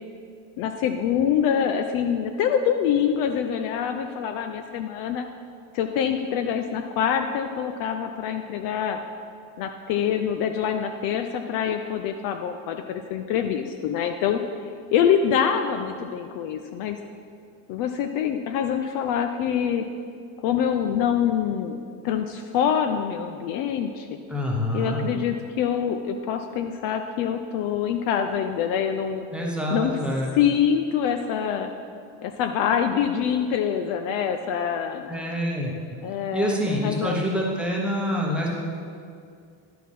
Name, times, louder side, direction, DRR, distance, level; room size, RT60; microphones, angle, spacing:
voice 1, 0.6-5.3 5.7-9.0 9.6-14.4 14.9-17.0 17.7-19.8 20.4-21.8 22.0-24.1 24.7-29.3 29.7-29.9 30.4-31.7 32.2-35.1 36.0-37.2, left 8 dB, 50° left, 6 dB, 0.5 m, -25 dB
voice 2, 24.3-25.0 29.3-30.3 35.1-35.7 36.3-38.5, equal, ahead, -3 dB, 0.9 m, -26 dB
11.0 x 4.7 x 5.4 m, 2.3 s
cardioid pair, 155°, 44 cm